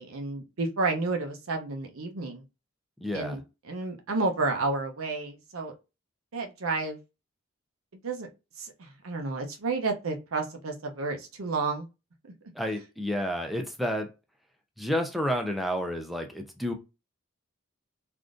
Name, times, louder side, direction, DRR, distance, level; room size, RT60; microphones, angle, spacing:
voice 1, 0.0-2.4 3.1-3.4 3.7-5.7 6.3-7.0 8.0-8.3 8.6-11.9, right 3 dB, 85° right, 0.7 m, -31 dB
voice 2, 3.0-3.4 12.6-14.1 14.8-16.7, equal, ahead, 0.4 m, -30 dB
3.5 x 2.5 x 2.4 m
head